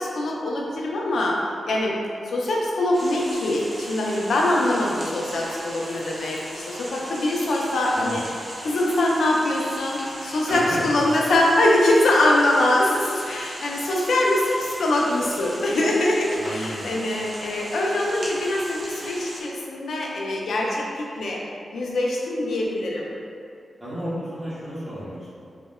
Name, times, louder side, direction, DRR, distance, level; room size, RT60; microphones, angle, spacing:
voice 1, 0.0-2.0 2.3-8.2 8.6-21.4 21.7-23.1, left 1 dB, 85° left, -2 dB, 0.3 m, -23 dB
sound 1, 2.9-19.4, right 1 dB, 50° right, 0.5 m, -38 dB
voice 2, 10.5-11.0 16.3-16.9 23.8-25.3, equal, 15° right, -11 dB, 0.9 m, -32 dB
2.7 x 2.1 x 2.2 m, 2.4 s
wide cardioid pair, 100°, 0 cm